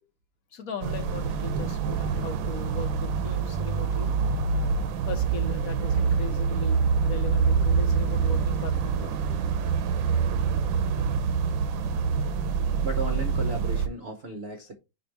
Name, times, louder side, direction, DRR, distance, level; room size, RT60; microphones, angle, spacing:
voice 1, 0.5-4.1 5.1-9.4, left 5 dB, 60° left, 1.0 m, -38 dB
sound 1, 0.8-13.9, right 6 dB, 80° right, 1.4 m, -26 dB
voice 2, 12.8-14.8, right 1 dB, 45° right, 0.9 m, -35 dB
5.1 x 4.7 x 4.5 m
omnidirectional pair, 2.1 m